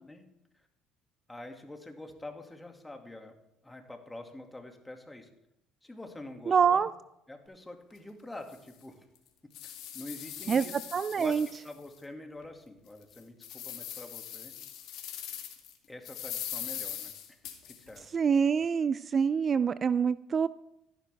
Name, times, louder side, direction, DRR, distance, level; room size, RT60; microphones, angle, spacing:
voice 1, 1.3-3.3 3.6-5.3 5.8-6.9 7.3-9.1 9.6-10.8 11.2-14.5 15.9-17.2 17.7-18.1, left 2 dB, 10° left, 4 dB, 2.1 m, -46 dB
voice 2, 6.5-6.9 10.5-10.7 10.9-11.5 18.1-20.5, right 6 dB, 40° right, 16 dB, 0.3 m, -25 dB
sound 1, 7.9-8.0 8.5-8.6 9.1-12.0 12.4-12.5 13.0-15.7 16.0-18.0, left 10 dB, 70° left, 2.3 m, -41 dB
14.5 x 11.5 x 3.4 m, 0.81 s
supercardioid pair, 85°, 0 cm